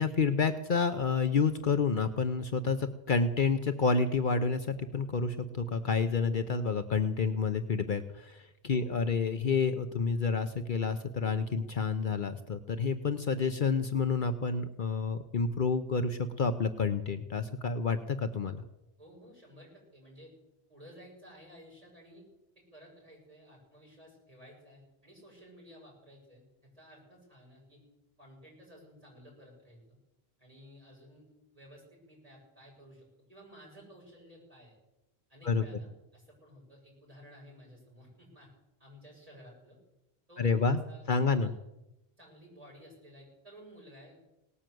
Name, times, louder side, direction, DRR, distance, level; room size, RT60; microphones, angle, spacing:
voice 1, 0.0-18.6 35.4-35.6 40.4-40.8 41.1-41.5, left 5 dB, 55° left, 9 dB, 0.9 m, -29 dB
voice 2, 19.0-20.3 20.7-22.2 22.6-27.8 28.2-30.0 30.4-31.3 31.5-34.8 35.3-38.5 38.8-39.8 40.3-40.6 40.9-41.5 42.2-44.3, equal, 35° right, -2 dB, 7.0 m, -54 dB
18.5 x 9.8 x 7.7 m, 0.93 s
omnidirectional pair, 1.1 m